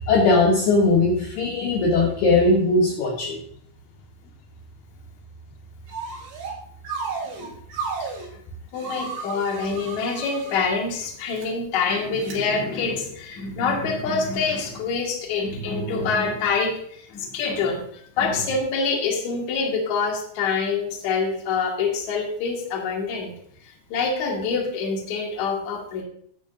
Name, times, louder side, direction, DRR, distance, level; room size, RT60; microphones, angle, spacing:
voice 1, 0.0-3.4, left 3 dB, 70° left, 0 dB, 2.6 m, -19 dB
sound 1, 5.9-6.6 6.9-8.3 8.8-10.6 11.2-11.5 12.2-12.4, right 4 dB, 85° right, 5.2 m, -33 dB
voice 2, 8.7-23.3 23.6-26.0, left 4 dB, 50° left, 0 dB, 2.4 m, -26 dB
13.5 x 9.0 x 2.6 m, 0.64 s
omnidirectional pair, 5.6 m